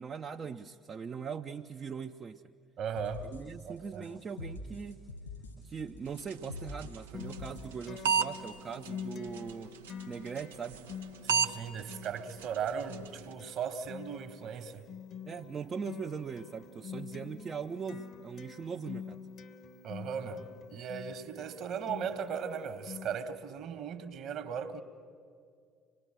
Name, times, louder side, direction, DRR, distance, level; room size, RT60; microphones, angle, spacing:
voice 1, 0.0-2.4 3.2-5.0 5.6-9.8 10.1-10.8 15.3-19.2, right 6 dB, 35° right, 0.6 m, -40 dB
voice 2, 2.8-3.3 3.5-4.1 11.2-14.9 19.8-24.8, right 7 dB, 55° right, 1.5 m, -37 dB
sound 1, 3.0-8.6, left 2 dB, 85° left, 7.2 m, -45 dB
sound 2, 6.1-13.3, right 6 dB, 75° right, 0.6 m, -37 dB
Acoustic guitar, 7.1-23.1, left 7 dB, 50° left, 1.3 m, -47 dB
25.5 x 20.5 x 7.7 m
figure-of-eight pair, 55°, 0 cm